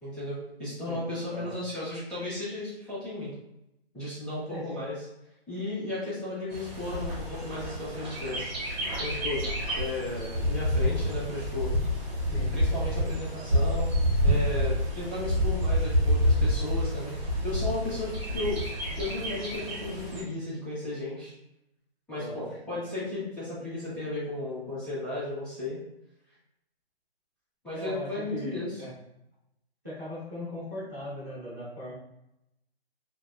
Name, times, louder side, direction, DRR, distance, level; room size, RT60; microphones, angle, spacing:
voice 1, 0.0-3.3 3.9-4.9 5.5-8.5 9.0-11.7 12.5-13.9 14.2-18.6 19.0-21.3 22.1-25.8 27.6-28.7, left 2 dB, 5° left, -15 dB, 0.8 m, -34 dB
voice 2, 4.5-4.8 12.3-12.5 22.1-22.6 27.7-28.9 29.8-31.9, left 1 dB, 20° right, -12 dB, 0.4 m, -39 dB
Bird, 6.5-20.2, equal, 45° right, 1.1 m, -28 dB
2.8 x 2.1 x 2.2 m, 0.85 s
hypercardioid pair, 155°, 32 cm